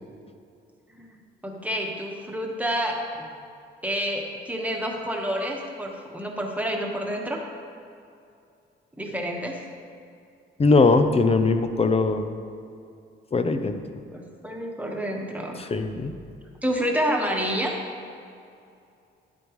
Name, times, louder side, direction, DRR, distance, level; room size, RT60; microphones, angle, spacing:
voice 1, 1.4-3.0 3.8-7.4 9.0-9.6 14.1-15.6 16.6-17.7, equal, 5° right, 0 dB, 1.4 m, -28 dB
voice 2, 10.6-12.3 13.3-13.8 15.6-16.1, left 3 dB, 30° left, 8 dB, 0.7 m, -20 dB
11.0 x 8.6 x 3.2 m, 2.5 s
cardioid pair, 90°, 20 cm